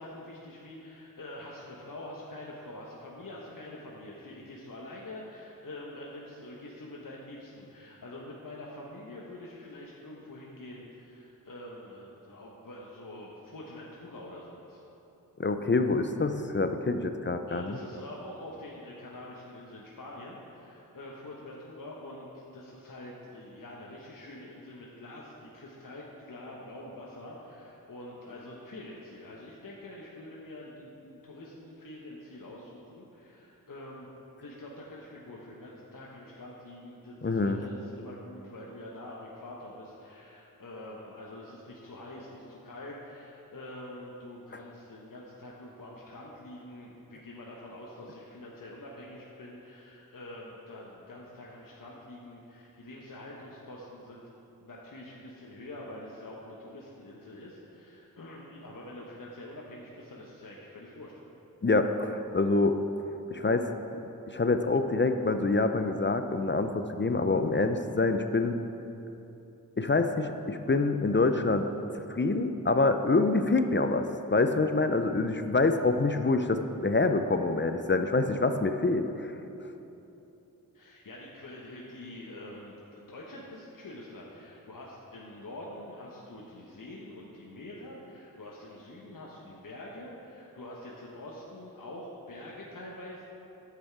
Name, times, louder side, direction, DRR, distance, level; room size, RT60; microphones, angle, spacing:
voice 1, 0.0-14.8 17.5-34.1 34.4-54.2 54.6-61.1 80.7-93.2, left 1 dB, 60° left, -4 dB, 1.2 m, -45 dB
voice 2, 15.4-17.7 37.2-37.6 61.6-62.8 63.3-63.7 64.3-68.6 69.8-71.7 72.1-79.3, left 3 dB, 30° left, 8 dB, 0.6 m, -26 dB
10.5 x 8.0 x 4.7 m, 2.9 s
cardioid pair, 40°, 36 cm